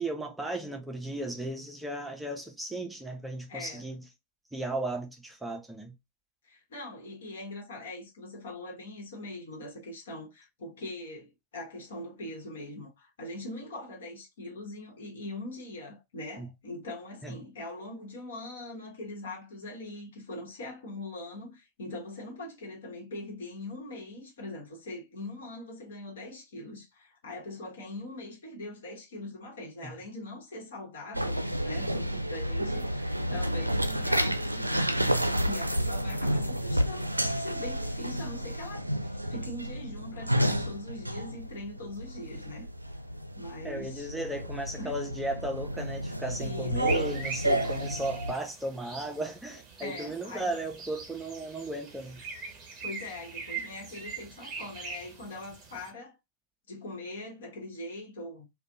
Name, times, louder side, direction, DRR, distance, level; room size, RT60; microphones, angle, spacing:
voice 1, 0.0-4.0 4.5-5.9 16.4-16.5 17.2-17.4 29.8-29.9 33.3-33.4 43.6-52.2, right 1 dB, 5° right, 0.5 m, -35 dB
voice 2, 3.5-3.9 6.4-34.8 35.2-37.1 37.3-42.6 43.3-44.1 44.8-45.0 46.4-47.2 49.8-50.5 52.8-56.2 56.7-58.5, left 2 dB, 65° left, 1.1 m, -42 dB
sound 1, 31.1-48.3, equal, 85° right, 0.4 m, -30 dB
sound 2, 46.8-55.9, right 5 dB, 30° right, 1.0 m, -42 dB
2.5 x 2.2 x 2.5 m
figure-of-eight pair, 90°, 0 cm